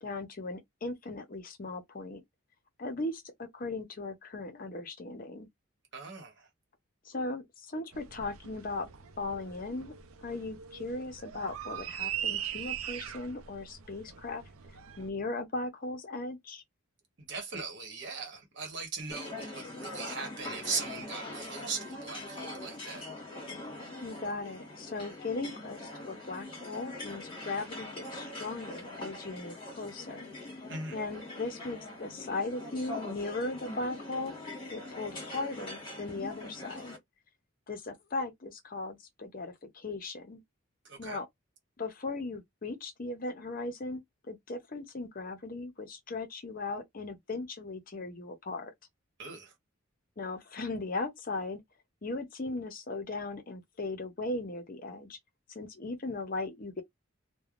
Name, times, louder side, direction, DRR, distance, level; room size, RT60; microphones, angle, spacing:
voice 1, 0.0-2.2 2.8-5.5 7.0-8.9 9.2-9.9 10.2-14.4 15.0-16.6 24.0-30.6 30.9-34.3 34.7-37.0 37.7-40.4 41.0-41.3 41.8-44.0 44.3-48.7 50.2-51.6 52.0-55.2 55.5-56.8, left 3 dB, 40° left, 0.6 m, -38 dB
voice 2, 5.9-6.5 17.2-23.1 30.7-31.0 40.8-41.2 49.2-49.5, right 4 dB, 55° right, 1.1 m, -39 dB
sound 1, 7.9-15.1, right 10 dB, 90° right, 0.5 m, -41 dB
sound 2, 19.1-37.0, left 2 dB, 25° left, 1.3 m, -43 dB
3.3 x 2.1 x 2.4 m
head